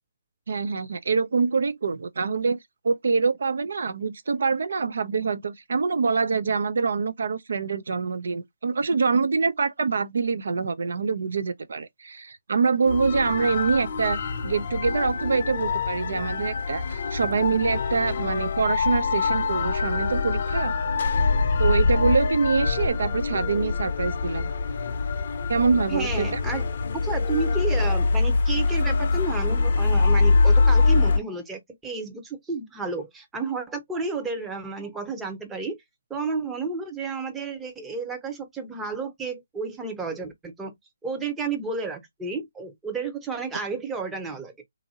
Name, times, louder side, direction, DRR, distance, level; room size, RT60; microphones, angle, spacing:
voice 1, 0.5-2.6 2.8-20.7 21.6-24.5 25.5-26.4, right 5 dB, 65° right, 0.4 m, -25 dB
sound 1, 12.8-31.2, left 4 dB, 50° left, 0.6 m, -24 dB
voice 2, 25.9-26.6 26.9-35.8 36.1-40.7 41.0-44.5, right 4 dB, 10° right, 0.7 m, -31 dB
2.7 x 2.5 x 2.7 m
figure-of-eight pair, 145°, 0 cm